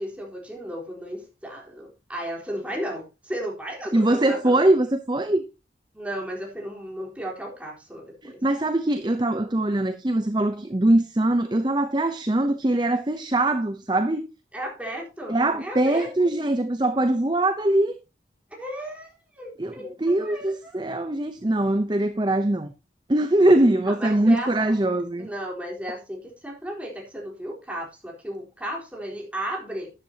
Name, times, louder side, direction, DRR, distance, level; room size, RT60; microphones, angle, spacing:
voice 1, 0.0-4.6 5.9-8.4 14.5-16.1 18.5-20.8 23.9-24.5 25.2-29.9, right 1 dB, 10° right, 3.9 m, -34 dB
voice 2, 3.9-5.4 8.2-14.3 15.3-17.9 19.6-22.7 23.1-25.3, right 1 dB, 25° right, 0.7 m, -22 dB
12.5 x 10.5 x 2.9 m
head